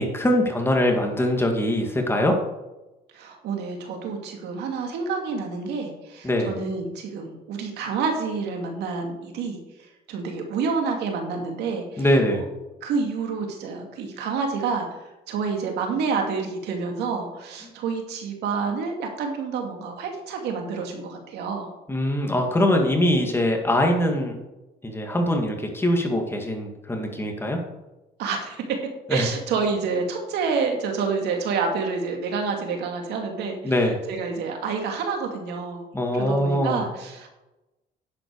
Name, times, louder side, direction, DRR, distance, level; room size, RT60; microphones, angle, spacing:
voice 1, 0.0-2.4 6.2-6.6 12.0-12.4 21.9-24.4 24.8-27.6 29.1-29.3 33.6-34.0 35.9-36.8, left 1 dB, 15° left, 2 dB, 2.3 m, -22 dB
voice 2, 3.1-12.1 12.8-15.0 15.3-21.7 28.2-28.8 29.1-35.9 36.1-37.3, right 5 dB, 80° right, 3 dB, 2.4 m, -28 dB
10.5 x 8.0 x 4.8 m, 1.0 s
cardioid pair, 110°, 17 cm